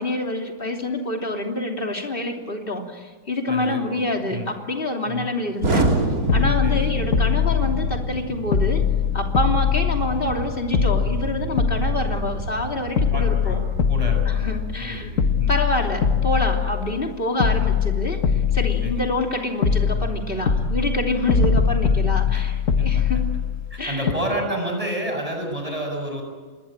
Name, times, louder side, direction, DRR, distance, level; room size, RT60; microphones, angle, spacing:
voice 1, 0.0-5.9 6.3-8.8 9.1-13.6 14.2-15.1 15.5-23.2 23.8-24.1, left 1 dB, 40° left, 2 dB, 3.3 m, -27 dB
voice 2, 3.5-4.5 5.1-5.3 6.6-6.9 13.1-13.6 13.9-15.0 15.4-15.5 18.8-19.1 22.3-22.4 22.8-23.0 23.7-26.2, right 1 dB, 25° right, 2 dB, 6.9 m, -30 dB
Explosion, 5.6-15.5, right 1 dB, 90° right, 3.3 m, -29 dB
sound 1, 6.3-8.2 8.5-10.4 10.7-12.6 13.0-14.9 15.2-17.1 17.4-19.3 19.6-23.8 24.1-24.2, left 6 dB, 65° left, 1.9 m, -22 dB
26.5 x 21.5 x 8.9 m, 1.5 s
omnidirectional pair, 1.5 m